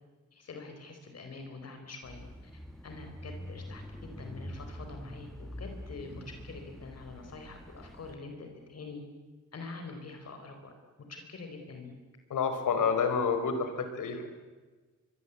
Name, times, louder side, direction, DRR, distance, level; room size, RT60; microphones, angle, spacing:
voice 1, 0.3-2.5 2.8-9.0 9.5-10.7 11.1-11.9, left 3 dB, 55° left, 5 dB, 4.6 m, -45 dB
Bicycle / Mechanisms, 2.0-8.2, equal, ahead, 1.9 m, -45 dB
voice 2, 12.3-14.3, left 5 dB, 85° left, 8 dB, 4.2 m, -29 dB
25.5 x 23.0 x 8.4 m, 1.3 s
wide cardioid pair, 130°, 30 cm